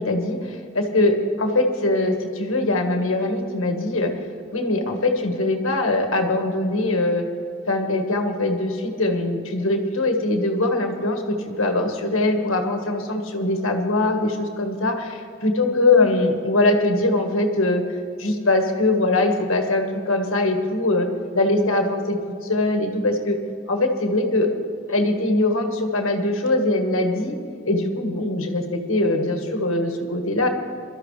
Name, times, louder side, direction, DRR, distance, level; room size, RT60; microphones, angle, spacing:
voice 1, 0.0-4.1 4.5-7.2 7.7-17.8 18.2-21.1 21.3-23.4 23.7-24.5 24.9-27.3 27.6-30.5, left 2 dB, 70° left, 3 dB, 1.6 m, -22 dB
22.5 x 13.0 x 3.3 m, 2.5 s
head